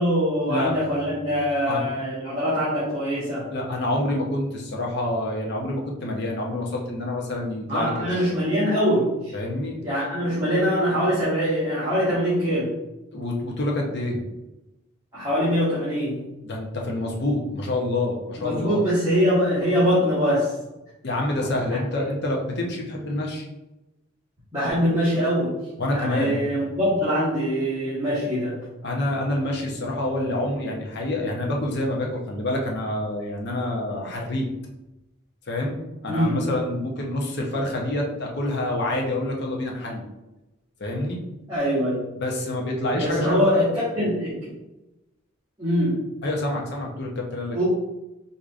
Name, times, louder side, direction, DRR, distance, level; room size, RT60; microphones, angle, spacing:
voice 1, 0.0-3.4 7.7-9.3 9.8-12.7 15.1-16.2 18.4-20.5 21.7-21.8 24.5-25.5 25.9-28.5 36.1-36.4 41.5-42.1 43.0-44.5 45.6-45.9 47.5-47.6, equal, 15° right, -13 dB, 1.5 m, -23 dB
voice 2, 3.5-8.3 9.3-9.8 13.1-14.2 16.4-18.8 21.0-23.4 25.8-26.5 28.8-34.5 35.5-35.8 36.0-40.1 40.8-41.2 42.2-43.4 46.2-47.6, left 1 dB, 50° left, -1 dB, 0.7 m, -27 dB
4.7 x 2.7 x 2.4 m, 0.99 s
head